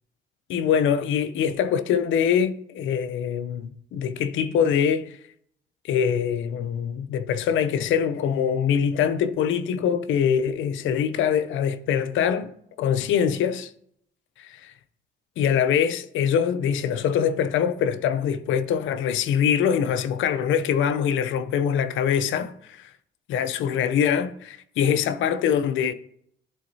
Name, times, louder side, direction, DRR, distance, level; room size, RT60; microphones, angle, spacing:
voice 1, 0.5-5.1 5.8-12.5 12.8-13.7 14.4-14.7 15.4-22.9 23.3-25.9, left 8 dB, 80° left, 0.5 m, -23 dB
11.5 x 3.9 x 2.7 m
cardioid pair, 90°, 20 cm